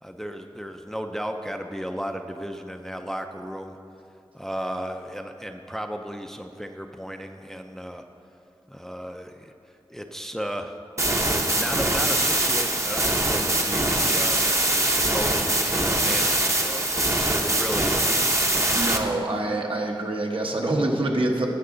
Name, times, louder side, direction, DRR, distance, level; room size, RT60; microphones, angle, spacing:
voice 1, 0.0-3.8 4.3-8.0 8.7-9.5 9.9-10.7 11.5-16.8 17.4-18.2, equal, 5° left, 5 dB, 0.5 m, -34 dB
sound 1, 11.0-19.0, right 1 dB, 30° right, 0.9 m, -23 dB
voice 2, 18.7-21.5, right 2 dB, 65° right, 0 dB, 1.2 m, -25 dB
16.5 x 6.0 x 3.8 m, 2.5 s
wide cardioid pair, 75°, 10 cm